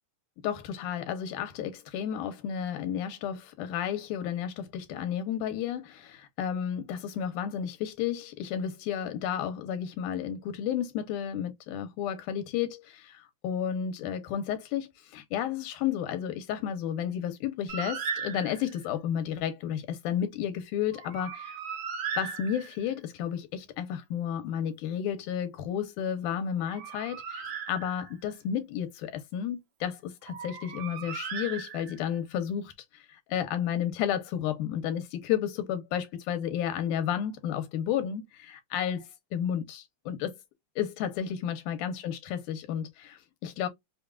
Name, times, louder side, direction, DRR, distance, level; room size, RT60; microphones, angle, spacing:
voice 1, 0.4-21.6 22.2-40.4 40.8-43.7, left 9 dB, 85° left, 2.2 m, -32 dB
Bird, 17.7-18.9 20.9-23.0 26.4-28.3 30.3-32.2, right 7 dB, 65° right, 1.5 m, -38 dB
5.4 x 2.2 x 2.3 m
omnidirectional pair, 3.6 m